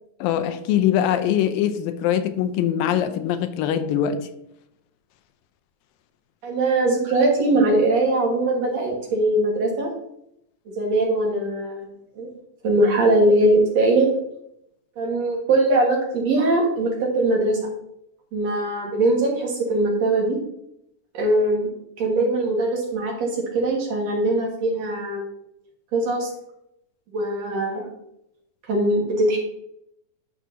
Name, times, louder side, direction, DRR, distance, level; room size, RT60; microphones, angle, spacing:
voice 1, 0.2-4.3, left 10 dB, 90° left, 9 dB, 2.4 m, -22 dB
voice 2, 6.4-9.9 10.7-11.9 12.2-12.3 12.6-14.1 15.0-17.6 18.3-20.4 21.1-21.7 22.0-25.3 25.9-26.3 27.1-27.8 28.7-29.4, right 2 dB, 55° right, -1 dB, 2.3 m, -21 dB
10.5 x 6.2 x 2.7 m, 0.77 s
omnidirectional pair, 4.1 m